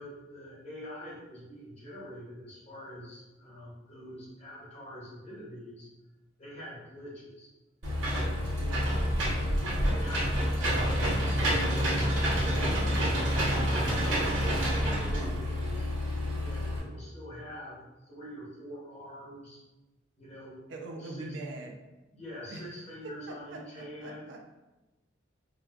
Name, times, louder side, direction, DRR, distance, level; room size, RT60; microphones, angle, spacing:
voice 1, 0.0-5.9 6.4-7.5 8.0-13.1 13.6-15.9 16.4-17.8 18.0-19.6 20.2-20.6 21.0-21.4 22.1-24.2, equal, 35° left, -7 dB, 1.1 m, -45 dB
Engine / Mechanisms, 7.8-16.8, equal, 90° right, 0.9 m, -28 dB
voice 2, 8.5-9.0 20.7-21.8 22.5-22.6 23.0-23.1 23.5-24.4, right 2 dB, 65° right, 2 dB, 0.4 m, -42 dB
4.5 x 2.1 x 2.3 m, 1.1 s
head